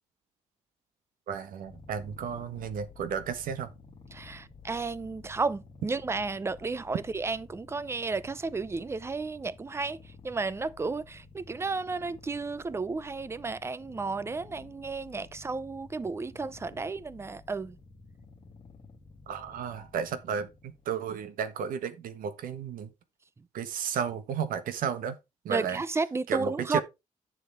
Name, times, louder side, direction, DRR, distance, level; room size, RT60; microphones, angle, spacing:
voice 1, 1.3-3.7 19.3-22.9 23.5-25.2 25.4-25.8 26.3-26.8, right 7 dB, 75° right, 1.4 m, -33 dB
Purr, 1.6-20.9, left 4 dB, 35° left, 2.3 m, -52 dB
voice 2, 4.1-17.8 25.5-26.8, right 4 dB, 20° right, 0.6 m, -33 dB
10.5 x 6.9 x 3.6 m
cardioid pair, 120°, 14 cm